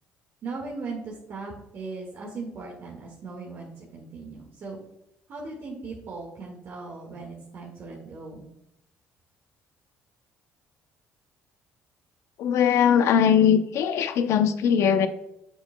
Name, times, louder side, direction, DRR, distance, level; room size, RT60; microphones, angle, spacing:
voice 1, 0.4-4.8 5.3-8.5, right 3 dB, 55° right, -2 dB, 1.8 m, -38 dB
voice 2, 12.4-15.1, left 8 dB, 70° left, 10 dB, 0.7 m, -20 dB
7.9 x 6.9 x 2.2 m, 0.83 s
cardioid pair, 85°, 5 cm